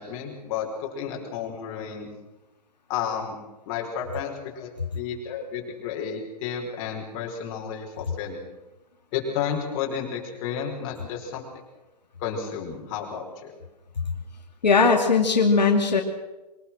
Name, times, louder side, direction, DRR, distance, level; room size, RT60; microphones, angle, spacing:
voice 1, 0.0-2.1 2.9-3.4 3.6-8.4 9.1-11.5 12.2-13.5, left 7 dB, 35° left, 1 dB, 5.2 m, -32 dB
voice 2, 14.6-16.0, left 4 dB, 85° left, 2 dB, 2.5 m, -19 dB
23.5 x 19.0 x 6.3 m, 1.1 s
hypercardioid pair, 130°, 21 cm